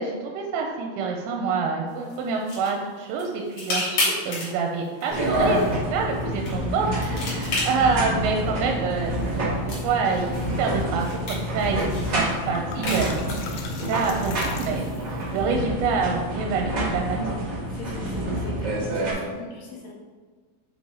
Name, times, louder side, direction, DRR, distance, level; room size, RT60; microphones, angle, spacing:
voice 1, 0.0-9.2 9.6-10.3 10.6-13.1 13.7-14.8 15.3-17.5, right 5 dB, 85° right, 1 dB, 3.3 m, -27 dB
sound 1, 1.9-14.9, left 2 dB, 45° left, 2.3 m, -34 dB
sound 2, 5.1-19.1, right 1 dB, 60° right, 1.1 m, -28 dB
voice 2, 6.8-7.2 17.7-19.9, left 3 dB, 65° left, -6 dB, 3.5 m, -39 dB
sound 3, 11.8-11.9 12.2-15.2, left 5 dB, 85° left, 3.1 m, -38 dB
7.2 x 4.6 x 4.2 m, 1.5 s
omnidirectional pair, 6.0 m